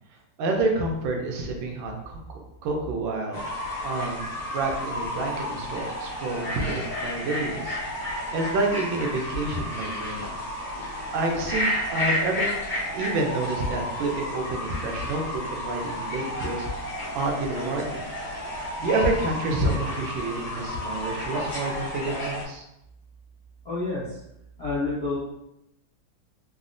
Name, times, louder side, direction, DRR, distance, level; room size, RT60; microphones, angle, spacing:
voice 1, 0.4-3.4 3.8-7.8 8.3-10.2 11.1-12.5 12.9-16.7 17.1-18.1 18.8-22.6, right 2 dB, 90° right, 1 dB, 1.4 m, -28 dB
Fowl / Bird, 3.3-22.4, left 1 dB, 45° left, 1.0 m, -32 dB
voice 2, 23.6-24.2 24.6-25.2, left 3 dB, 65° left, -10 dB, 0.6 m, -28 dB
3.9 x 2.0 x 2.5 m, 0.85 s
omnidirectional pair, 2.1 m